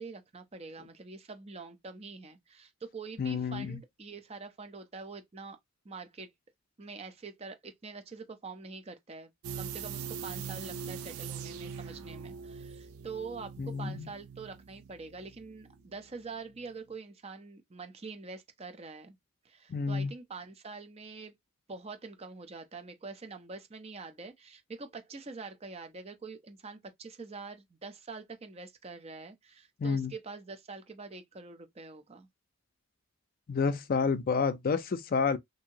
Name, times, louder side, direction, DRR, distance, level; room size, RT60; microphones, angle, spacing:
voice 1, 0.0-5.6 5.8-6.3 6.8-9.3 9.6-19.2 19.4-21.3 21.7-32.3, right 4 dB, 30° right, 0.5 m, -45 dB
voice 2, 3.2-3.8 13.6-14.1 19.7-20.1 29.8-30.1 33.5-35.4, left 5 dB, 40° left, 0.4 m, -29 dB
sound 1, 9.4-16.2 16.5-16.6, right 7 dB, 85° right, 0.4 m, -42 dB
2.7 x 2.7 x 2.7 m
head